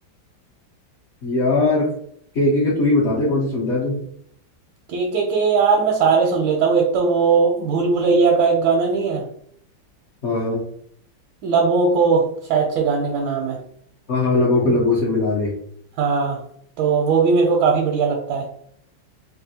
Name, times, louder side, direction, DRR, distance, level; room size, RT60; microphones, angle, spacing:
voice 1, 1.2-1.9 2.3-4.0 10.2-10.6 14.1-15.5, left 2 dB, 65° left, -7 dB, 0.6 m, -19 dB
voice 2, 4.9-9.2 11.4-13.6 16.0-16.4 16.8-18.4, right 5 dB, 85° right, 0 dB, 1.4 m, -19 dB
3.4 x 2.4 x 2.7 m, 0.66 s
omnidirectional pair, 2.1 m